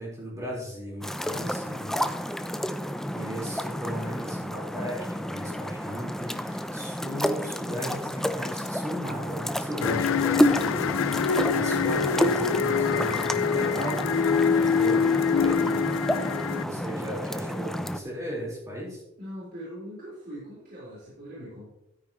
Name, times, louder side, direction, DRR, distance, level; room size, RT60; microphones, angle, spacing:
voice 1, 0.0-2.2 3.1-10.8 11.1-15.8 16.6-19.0, equal, 15° right, -4 dB, 4.3 m, -36 dB
sound 1, 1.0-18.0, equal, ahead, 0.5 m, -30 dB
sound 2, 9.8-16.6, left 6 dB, 80° left, 0.4 m, -25 dB
voice 2, 16.4-16.9 19.2-21.7, equal, 55° right, -8 dB, 4.6 m, -42 dB
13.0 x 9.1 x 3.1 m, 0.84 s
head